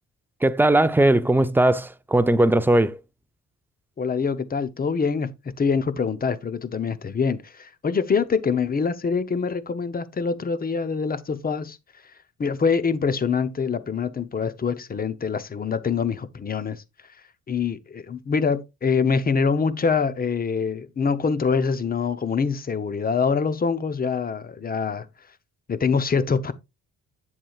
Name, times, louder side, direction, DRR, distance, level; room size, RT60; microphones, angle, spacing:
voice 1, 0.4-3.0, right 1 dB, 5° right, 0.5 m, -19 dB
voice 2, 4.0-11.8 12.4-16.8 17.5-25.1 25.7-26.5, left 5 dB, 30° left, 0.8 m, -25 dB
8.1 x 7.4 x 2.4 m
cardioid pair, 90°, 30 cm